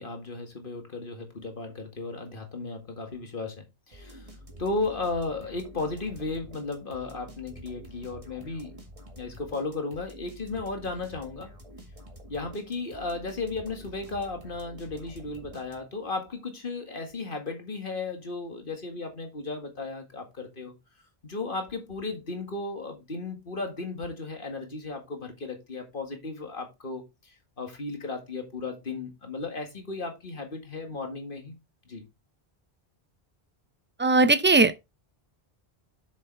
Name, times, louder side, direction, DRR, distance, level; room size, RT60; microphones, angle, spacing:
voice 1, 0.0-4.3 4.6-8.7 9.2-11.5 12.3-20.7 21.2-31.6 31.9-32.0, left 3 dB, 60° left, 2.1 m, -35 dB
sound 1, 3.9-16.1, equal, 35° right, 1.9 m, -48 dB
voice 2, 34.0-34.8, right 3 dB, 15° right, 0.4 m, -19 dB
7.5 x 6.8 x 3.4 m
omnidirectional pair, 1.0 m